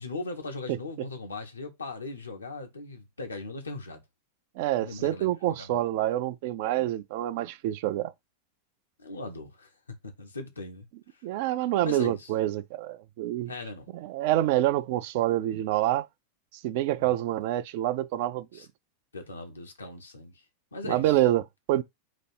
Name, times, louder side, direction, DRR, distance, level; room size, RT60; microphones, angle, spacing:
voice 1, 0.0-4.0 4.8-5.8 9.0-9.7 10.0-10.9 11.8-12.3 13.5-13.9 14.4-14.5 17.0-17.2 18.5-18.7 19.1-20.3 20.7-21.2, left 3 dB, 75° left, 0.9 m, -39 dB
voice 2, 4.6-8.1 11.2-13.5 13.9-16.1 16.6-18.6 20.8-21.8, right 14 dB, 50° right, 0.4 m, -27 dB
4.1 x 2.5 x 4.7 m
figure-of-eight pair, 90°, 0 cm